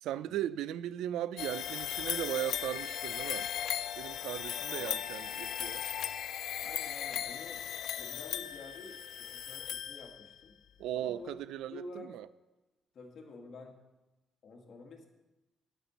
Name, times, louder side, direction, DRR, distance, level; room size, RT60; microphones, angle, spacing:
voice 1, 0.0-3.5 4.0-5.8 10.8-12.3, right 12 dB, 90° right, 0.3 m, -37 dB
sound 1, 1.4-10.4, left 10 dB, 75° left, 0.5 m, -37 dB
voice 2, 6.6-7.6 7.9-10.5 10.9-11.3 11.7-12.1 12.9-13.8 14.4-15.1, left 2 dB, 55° left, 1.8 m, -49 dB
9.3 x 6.1 x 7.9 m
cardioid pair, 90°, 0 cm